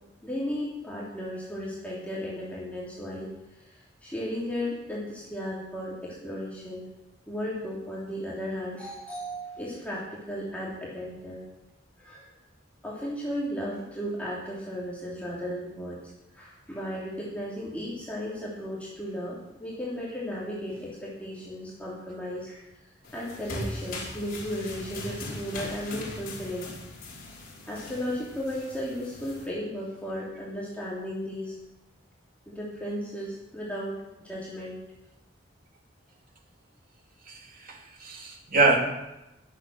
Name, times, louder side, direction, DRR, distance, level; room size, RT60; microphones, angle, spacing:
voice 1, 0.2-3.3 3.6-6.9 7.3-11.4 12.0-12.3 12.8-26.7 27.7-31.5 32.5-34.8, equal, 10° left, -7 dB, 3.1 m, -35 dB
sound 1, 23.0-29.5, left 2 dB, 50° left, 5.4 m, -39 dB
voice 2, 37.3-38.8, right 3 dB, 50° right, 1 dB, 2.7 m, -25 dB
21.0 x 8.4 x 6.3 m, 0.95 s
head